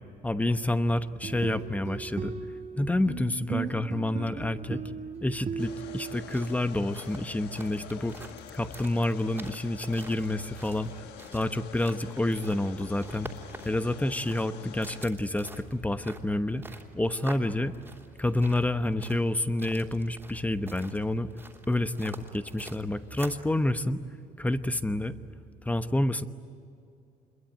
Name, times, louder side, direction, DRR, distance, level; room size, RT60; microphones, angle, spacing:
voice 1, 0.2-2.3 2.8-4.8 5.2-10.9 11.3-13.3 13.6-16.6 16.9-17.8 18.2-21.3 21.7-24.0 24.4-25.2 25.6-26.2, left 1 dB, 10° left, 10 dB, 1.0 m, -28 dB
sound 1, 1.0-6.6, right 6 dB, 40° right, 1.6 m, -37 dB
sound 2, 5.6-15.1, left 11 dB, 90° left, 1.2 m, -47 dB
sound 3, 6.2-23.5, right 2 dB, 10° right, 3.1 m, -47 dB
26.5 x 22.5 x 8.9 m, 2.5 s
cardioid pair, 110°, 17 cm